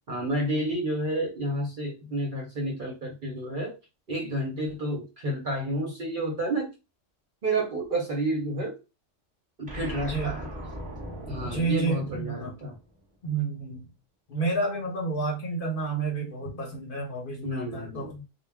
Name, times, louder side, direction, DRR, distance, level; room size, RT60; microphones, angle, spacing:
voice 1, 0.1-3.7 4.1-6.7 7.4-8.7 9.6-10.5 11.2-12.7 17.4-18.2, right 1 dB, 50° right, 1 dB, 0.7 m, -30 dB
sound 1, 9.7-13.0, equal, 5° right, 0.9 m, -39 dB
voice 2, 11.4-12.5 13.2-13.9 14.3-18.1, right 3 dB, 50° left, -1 dB, 0.8 m, -30 dB
2.2 x 2.1 x 3.3 m, 0.28 s
omnidirectional pair, 1.3 m